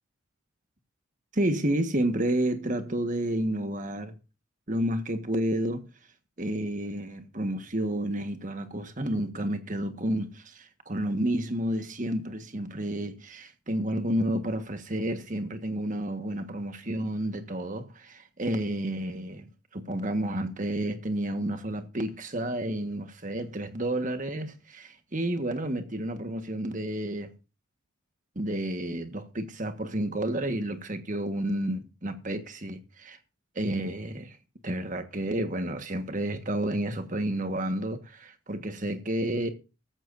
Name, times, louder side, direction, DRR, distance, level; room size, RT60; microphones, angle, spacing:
voice 1, 1.3-4.1 4.7-5.9 6.4-27.3 28.3-33.2 33.5-34.4 34.6-39.5, right 1 dB, 40° right, 1.5 m, -30 dB
15.0 x 13.5 x 2.6 m
head